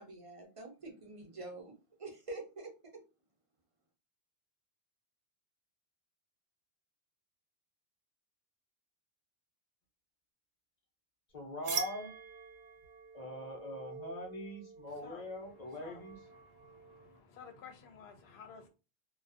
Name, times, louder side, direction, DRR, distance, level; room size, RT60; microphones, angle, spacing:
voice 1, 0.0-3.0, right 2 dB, 40° right, 0.6 m, -47 dB
voice 2, 11.3-12.1 13.1-16.2, left 1 dB, 45° left, 0.8 m, -42 dB
sound 1, 11.6-17.2, right 7 dB, 80° right, 0.8 m, -45 dB
voice 3, 14.9-16.0 16.3-18.7, left 6 dB, 80° left, 0.8 m, -54 dB
2.5 x 2.2 x 2.4 m
omnidirectional pair, 1.1 m